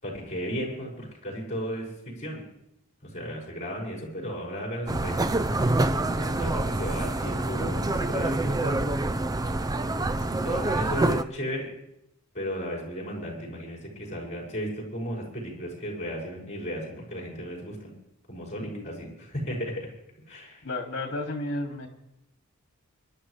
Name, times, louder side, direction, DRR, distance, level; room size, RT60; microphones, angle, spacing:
voice 1, 0.0-2.4 3.0-5.3 6.2-8.5 9.9-11.7 12.3-17.9 18.3-19.9 20.3-20.6, equal, 35° left, -3 dB, 5.7 m, -35 dB
sound 1, 4.9-11.2, right 2 dB, 15° right, 0.4 m, -26 dB
voice 2, 7.6-8.9 18.6-19.0 20.6-21.9, left 2 dB, 60° left, 3 dB, 2.4 m, -35 dB
26.0 x 11.5 x 3.3 m, 0.81 s
head